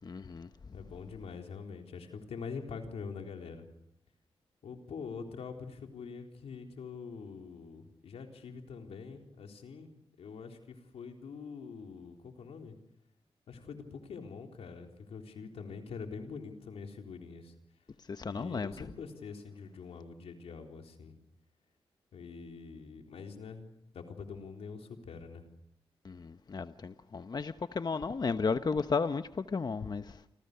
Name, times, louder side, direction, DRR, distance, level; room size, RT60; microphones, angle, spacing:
voice 1, 0.0-0.5 18.1-18.7 26.0-30.0, left 4 dB, 45° left, 0.9 m, -33 dB
voice 2, 0.7-3.7 4.6-12.8 13.5-17.5 18.3-21.2 22.1-23.6 23.9-25.4, left 5 dB, 90° left, 3.9 m, -44 dB
29.5 x 26.5 x 6.8 m
cardioid pair, 80°, 10 cm